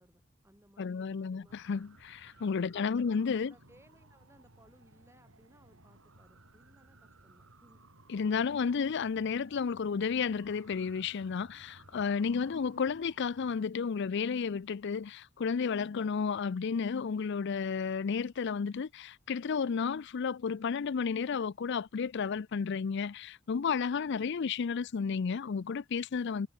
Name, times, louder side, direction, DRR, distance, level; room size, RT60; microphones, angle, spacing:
voice 1, 0.0-1.5 2.7-7.9, right 1 dB, 15° right, 7.4 m, -63 dB
voice 2, 0.8-3.5 8.1-26.5, left 5 dB, 60° left, 0.4 m, -32 dB
sound 1, 1.5-13.6, right 2 dB, 85° right, 7.1 m, -59 dB
head